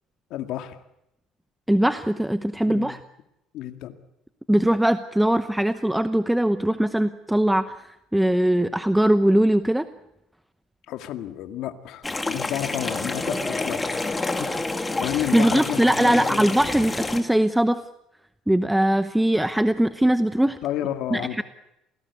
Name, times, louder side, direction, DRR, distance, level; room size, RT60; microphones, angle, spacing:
voice 1, 0.3-0.8 2.7-2.9 3.5-4.0 10.9-14.1 14.4-16.4 20.6-21.4, left 12 dB, 70° left, 7 dB, 2.1 m, -31 dB
voice 2, 1.7-3.0 4.5-9.9 15.3-17.8 18.5-20.6 21.1-21.4, right 1 dB, 5° right, 11 dB, 0.8 m, -21 dB
sound 1, 12.0-17.2, left 2 dB, 15° left, 2.2 m, -28 dB
27.5 x 18.5 x 8.3 m, 0.86 s
cardioid pair, 130°, 0 cm